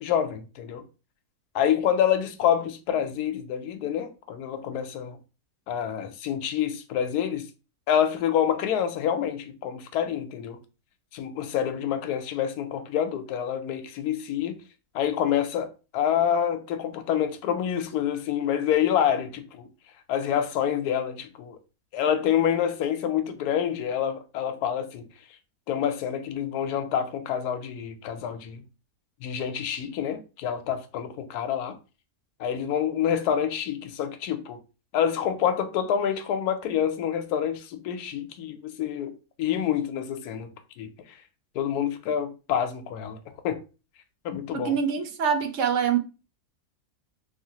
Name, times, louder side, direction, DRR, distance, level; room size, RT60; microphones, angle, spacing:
voice 1, 0.0-0.8 1.5-5.2 5.7-7.5 7.9-10.6 11.1-14.6 14.9-19.7 20.1-21.6 21.9-25.1 25.7-28.6 29.2-31.8 32.4-34.6 34.9-39.1 39.4-40.5 40.8-40.9 41.5-43.2 43.4-43.6 44.2-44.8, left 9 dB, 80° left, 1.1 m, -27 dB
voice 2, 44.5-46.0, right 7 dB, 65° right, 0.8 m, -25 dB
3.3 x 2.9 x 2.8 m
omnidirectional pair, 1.7 m